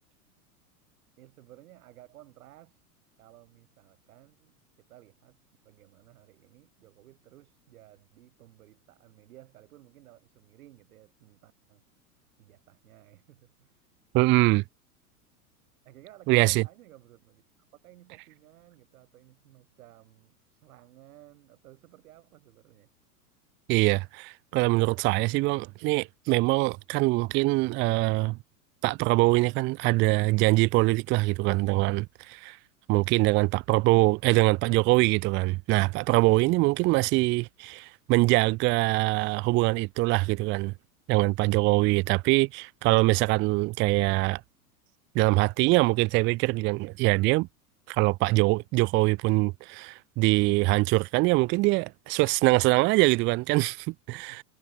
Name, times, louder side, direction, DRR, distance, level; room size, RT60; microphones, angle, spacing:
voice 1, 1.2-2.8 3.2-5.4 5.6-11.8 12.4-13.9 15.8-17.4 17.7-22.9 54.3-54.4, right 15 dB, 65° right, 7.2 m, -55 dB
voice 2, 14.1-14.6 16.3-16.6 23.7-28.4 28.8-32.6 32.9-40.7 41.1-44.4 45.1-47.5 47.9-54.4, right 22 dB, 25° right, 0.5 m, -23 dB
hypercardioid pair, 100°, 46 cm